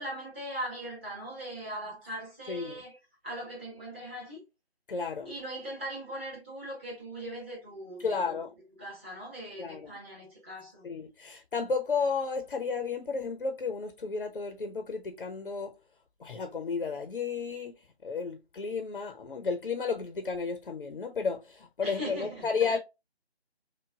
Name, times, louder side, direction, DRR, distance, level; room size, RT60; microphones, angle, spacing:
voice 1, 0.0-3.0 3.2-4.4 5.3-8.3 8.8-10.8 21.8-22.8, right 1 dB, 10° right, 0.9 m, -40 dB
voice 2, 2.5-2.8 4.9-5.3 8.0-8.5 9.6-10.0 10.8-15.7 16.2-22.8, left 5 dB, 55° left, 0.7 m, -33 dB
6.1 x 2.2 x 2.3 m
figure-of-eight pair, 150°, 33 cm